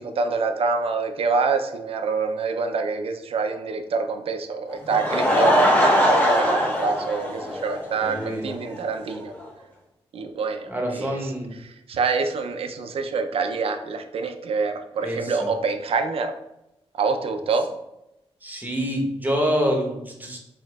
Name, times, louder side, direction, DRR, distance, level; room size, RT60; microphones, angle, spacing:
voice 1, 0.0-9.3 10.1-16.3 16.9-17.7, right 4 dB, 65° right, 6 dB, 0.5 m, -26 dB
Laughter / Crowd, 4.7-8.2 8.5-8.6 9.1-9.2 9.4-9.5, equal, 15° left, 0.9 m, -21 dB
voice 2, 8.0-8.5 10.7-11.5 15.0-15.5 18.4-20.4, equal, 15° right, -1 dB, 0.9 m, -26 dB
4.7 x 3.6 x 2.3 m, 0.89 s
cardioid pair, 100°, 11 cm